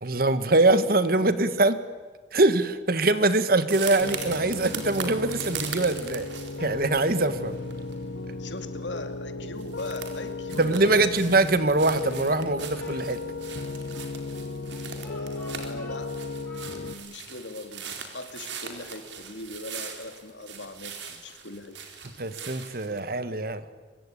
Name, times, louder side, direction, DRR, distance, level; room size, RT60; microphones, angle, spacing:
voice 1, 0.0-1.8 2.3-6.3 6.6-7.5 10.6-13.2 22.2-23.6, right 2 dB, 55° right, 12 dB, 1.5 m, -23 dB
voice 2, 1.0-1.5 8.4-11.1 15.0-16.1 16.5-21.8, left 2 dB, 85° left, 8 dB, 2.7 m, -40 dB
sound 1, 3.7-8.3 8.6-9.0 9.3-9.4 9.6-23.0, right 6 dB, 80° right, 4.1 m, -40 dB
Piano, 4.0-16.9, left 3 dB, 65° left, 1.1 m, -36 dB
Speech, 12.0-13.1 13.9-16.9, left 1 dB, 10° left, 5.0 m, -51 dB
24.5 x 23.5 x 10.0 m, 1.4 s
head